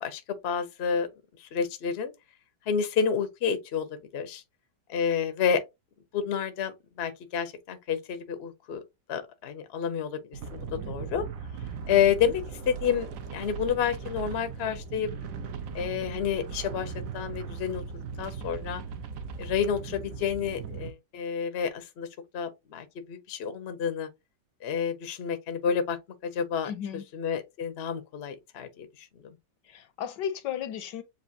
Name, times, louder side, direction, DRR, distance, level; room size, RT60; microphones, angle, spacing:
voice 1, 0.0-1.1 1.4-2.1 2.7-4.4 4.9-5.6 6.1-8.8 9.1-11.2 11.9-13.1 13.3-15.1 15.7-17.8 18.2-18.8 19.4-22.1 22.3-24.1 24.6-26.0 26.2-29.4, left 7 dB, 55° left, 0.7 m, -29 dB
sound 1, 10.3-20.9, right 6 dB, 65° right, 0.9 m, -38 dB
voice 2, 26.7-27.0 29.7-31.0, left 9 dB, 75° left, 1.2 m, -34 dB
7.1 x 2.6 x 2.6 m
omnidirectional pair, 2.1 m